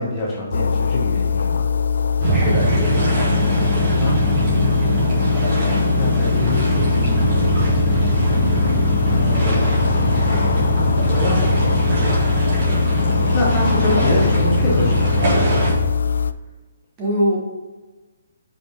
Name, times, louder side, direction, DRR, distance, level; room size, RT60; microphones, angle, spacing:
voice 1, 0.0-1.7 4.0-5.0 6.0-7.9 9.1-9.9 11.1-12.2 13.3-15.4, left 2 dB, 20° left, -4 dB, 1.0 m, -25 dB
sound 1, 0.5-16.3, left 6 dB, 80° left, 0.3 m, -21 dB
sound 2, 2.2-15.7, right 2 dB, 35° right, 2.0 m, -21 dB
voice 2, 2.3-3.2 17.0-17.4, equal, 15° right, -5 dB, 1.3 m, -23 dB
5.2 x 4.5 x 5.1 m, 1.2 s
hypercardioid pair, 175°, 0 cm